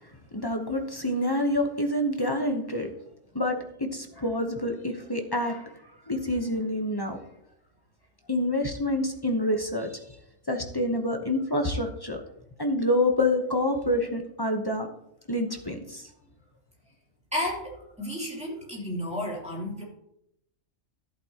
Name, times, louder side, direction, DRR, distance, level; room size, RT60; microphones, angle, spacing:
voice 1, 0.3-2.9 3.3-5.7 6.1-7.2 8.3-10.0 10.5-12.2 12.6-14.9 15.3-16.0, left 1 dB, 20° left, 4 dB, 1.0 m, -27 dB
voice 2, 17.3-19.8, left 1 dB, 5° right, -5 dB, 3.4 m, -32 dB
14.0 x 8.3 x 3.0 m, 0.77 s
omnidirectional pair, 1.4 m